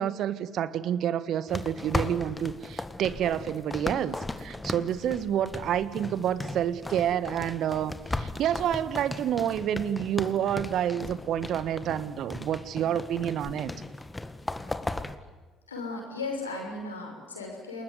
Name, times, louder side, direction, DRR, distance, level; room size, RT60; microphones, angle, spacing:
voice 1, 0.0-13.7, right 10 dB, 55° right, 15 dB, 1.5 m, -29 dB
sound 1, 1.5-15.2, left 2 dB, 15° left, 1.9 m, -37 dB
voice 2, 15.7-17.8, left 3 dB, 90° left, 1 dB, 6.1 m, -36 dB
29.0 x 20.5 x 9.7 m, 1.2 s
hypercardioid pair, 55°, 0 cm